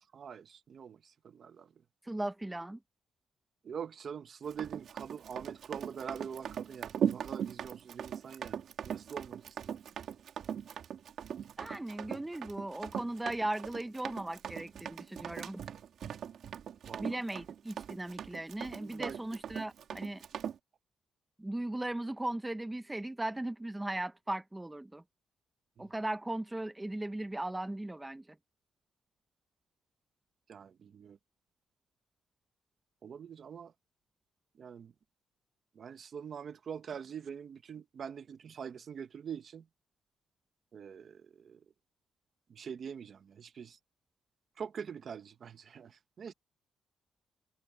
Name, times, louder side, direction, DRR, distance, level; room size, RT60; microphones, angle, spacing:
voice 1, 0.1-1.7 3.6-9.8 16.9-17.4 18.8-19.2 25.8-25.9 30.5-31.2 33.0-33.7 34.5-34.9 35.7-39.7 40.7-41.6 42.5-43.8 44.6-46.3, right 7 dB, 45° right, 1.1 m, -44 dB
voice 2, 2.1-2.8 11.6-15.6 17.0-20.2 21.4-25.0 25.8-28.2, right 1 dB, 10° right, 0.8 m, -37 dB
Run, 4.5-20.6, right 8 dB, 60° right, 2.7 m, -39 dB
cardioid pair, 150°, 0 cm